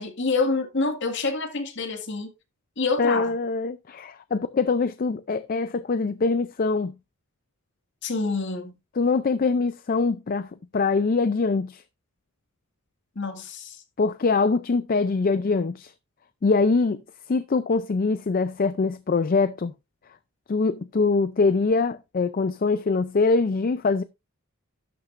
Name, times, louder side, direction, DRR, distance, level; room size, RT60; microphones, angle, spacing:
voice 1, 0.0-2.3 2.8-3.4 8.0-8.7 13.2-13.8, left 3 dB, 55° left, 1.9 m, -27 dB
voice 2, 3.0-6.9 9.0-11.8 14.0-15.9 16.4-17.0 17.3-19.7 20.5-24.0, left 4 dB, 40° left, 0.4 m, -23 dB
12.0 x 8.8 x 2.5 m
head